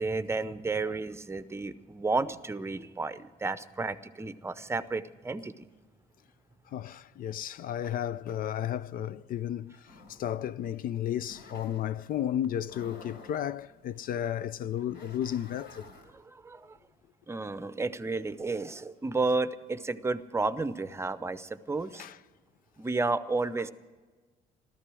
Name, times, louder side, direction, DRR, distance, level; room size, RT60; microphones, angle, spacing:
voice 1, 0.0-5.5 16.1-16.8 17.3-22.0 22.8-23.7, right 3 dB, 15° right, 0.7 m, -32 dB
voice 2, 6.7-15.9 21.9-22.2, left 10 dB, 55° left, 0.4 m, -33 dB
sound 1, 9.9-16.1, left 3 dB, 75° left, 4.5 m, -52 dB
15.0 x 13.5 x 6.2 m
cardioid pair, 110°, 17 cm